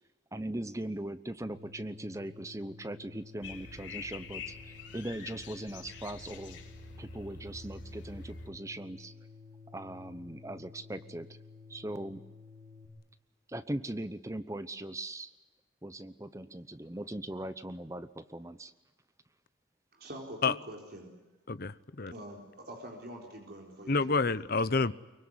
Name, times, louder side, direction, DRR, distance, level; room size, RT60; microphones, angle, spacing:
voice 1, 0.3-6.6 7.0-9.1 9.7-11.3 11.7-12.2 13.5-15.3 15.8-18.7, right 1 dB, 15° right, 0.9 m, -40 dB
sound 1, 1.4-12.9, left 4 dB, 85° right, 7.6 m, -53 dB
sound 2, 3.4-8.5, left 4 dB, 75° left, 5.6 m, -46 dB
voice 2, 19.9-21.1 22.1-24.5, right 1 dB, 50° right, 4.3 m, -45 dB
voice 3, 21.5-22.1 23.9-24.9, left 3 dB, 50° left, 0.9 m, -28 dB
24.5 x 24.0 x 9.7 m
head